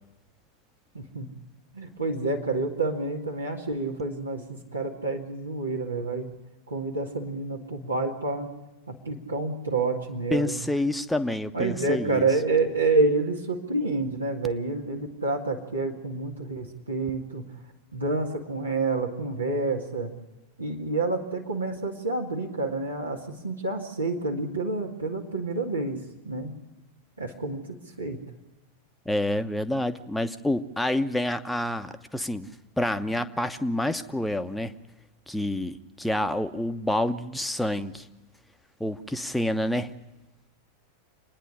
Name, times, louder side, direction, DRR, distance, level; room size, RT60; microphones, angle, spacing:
voice 1, 0.9-1.3 1.7-6.3 6.7-8.5 8.9-10.5 11.5-17.5 17.9-20.1 20.6-26.5 27.2-28.2, right 3 dB, 80° right, -1 dB, 2.3 m, -28 dB
voice 2, 10.3-12.3 29.0-32.5 32.8-34.7 35.3-38.1 38.8-39.9, left 1 dB, 5° left, 8 dB, 1.1 m, -28 dB
27.5 x 10.5 x 9.8 m, 1.1 s
figure-of-eight pair, 90°, 0 cm